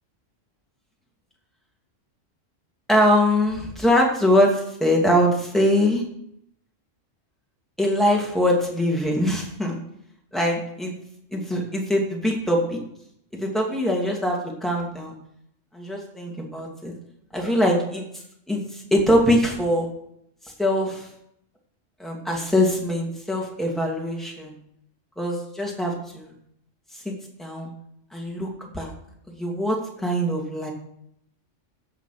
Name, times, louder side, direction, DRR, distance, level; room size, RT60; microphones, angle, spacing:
voice 1, 2.9-6.0 7.8-9.8 10.3-10.9 11.3-12.8 13.3-15.1 15.7-16.9 17.3-18.1 18.5-19.9 20.6-21.1 22.0-24.5 25.2-26.3 26.9-27.1 27.4-27.7 28.1-28.9 29.4-30.7, equal, ahead, -1 dB, 2.6 m, -22 dB
15.5 x 6.7 x 5.9 m, 0.75 s
omnidirectional pair, 1.3 m